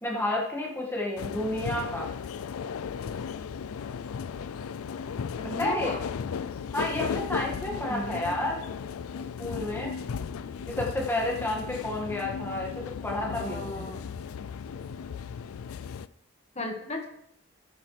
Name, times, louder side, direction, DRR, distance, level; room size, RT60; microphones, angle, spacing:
voice 1, 0.0-2.1 5.6-5.9 6.7-8.6 9.4-9.9 10.7-13.7, left 1 dB, 10° left, -2 dB, 1.8 m, -30 dB
sound 1, 1.2-16.1, left 6 dB, 80° left, 0.4 m, -36 dB
voice 2, 5.4-6.0 7.6-8.4 13.2-14.1 16.5-17.1, left 1 dB, 30° left, 2 dB, 1.7 m, -36 dB
13.5 x 8.6 x 3.3 m, 0.72 s
head